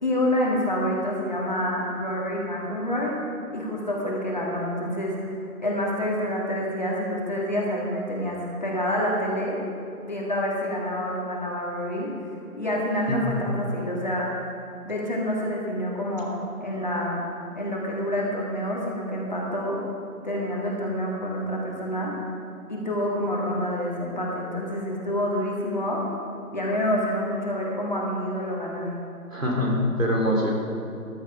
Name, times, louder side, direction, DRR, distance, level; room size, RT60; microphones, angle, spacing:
voice 1, 0.0-3.2 3.5-5.2 5.6-9.6 10.0-12.1 12.6-14.4 14.8-16.3 16.6-17.2 17.6-19.8 20.2-22.1 22.7-26.0 26.5-28.9, equal, 30° left, -3 dB, 2.0 m, -27 dB
voice 2, 13.1-13.4 29.3-30.5, left 1 dB, 60° right, -1 dB, 3.4 m, -24 dB
14.5 x 11.5 x 4.8 m, 2.7 s
figure-of-eight pair, 175°, 45 cm